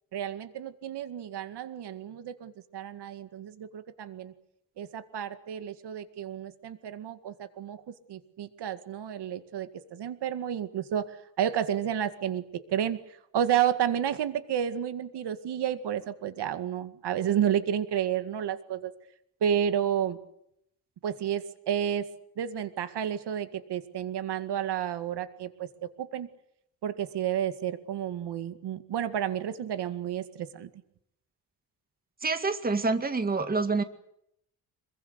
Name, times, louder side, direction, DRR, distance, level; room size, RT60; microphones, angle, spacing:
voice 1, 0.1-4.3 4.8-7.8 8.1-13.0 13.3-18.9 19.4-20.2 21.0-22.1 22.4-26.3 26.8-30.7, right 9 dB, 90° right, 10 dB, 2.2 m, -31 dB
voice 2, 32.2-33.8, right 3 dB, 25° right, 9 dB, 2.1 m, -27 dB
27.0 x 23.0 x 8.2 m, 0.75 s
wide cardioid pair, 155°, 39 cm